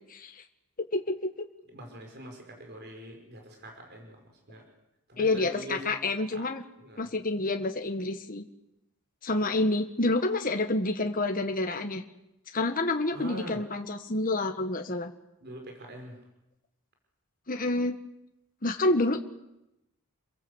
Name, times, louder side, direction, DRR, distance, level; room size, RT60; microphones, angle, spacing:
voice 1, 0.1-0.4 0.9-1.3 5.2-6.6 7.0-8.4 9.2-12.0 12.5-15.1 17.5-17.9 18.6-19.2, left 2 dB, 40° left, 5 dB, 1.5 m, -28 dB
voice 2, 1.7-4.2 4.5-4.6 5.1-6.0 6.3-6.5 6.8-7.1 13.1-13.6 15.4-16.2, right 1 dB, 50° right, 2 dB, 5.2 m, -43 dB
29.0 x 22.5 x 8.1 m, 0.89 s
head